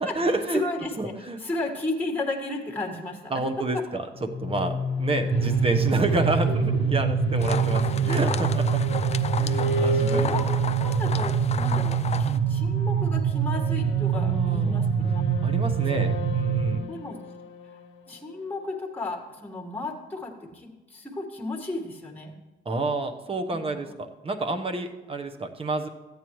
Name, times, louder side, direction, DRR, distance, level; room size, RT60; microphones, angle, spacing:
voice 1, 0.0-0.6 1.0-1.4 3.3-4.1 4.4-9.0 9.3-10.3 14.1-14.9 15.4-16.9 22.6-25.9, right 2 dB, 30° right, 6 dB, 1.0 m, -29 dB
voice 2, 0.5-3.2 3.7-3.8 5.3-5.5 6.1-6.3 7.5-8.4 10.0-10.4 10.7-15.2 16.7-17.2 18.1-22.3 23.5-23.8, left 2 dB, 10° left, 1 dB, 1.6 m, -34 dB
sound 1, 4.1-18.8, left 3 dB, 75° left, 1.0 m, -34 dB
sound 2, 5.3-16.8, right 7 dB, 50° right, 0.5 m, -25 dB
sound 3, 7.4-12.4, left 7 dB, 35° left, 0.5 m, -34 dB
14.0 x 8.8 x 3.1 m, 1.1 s
cardioid pair, 90°, 20 cm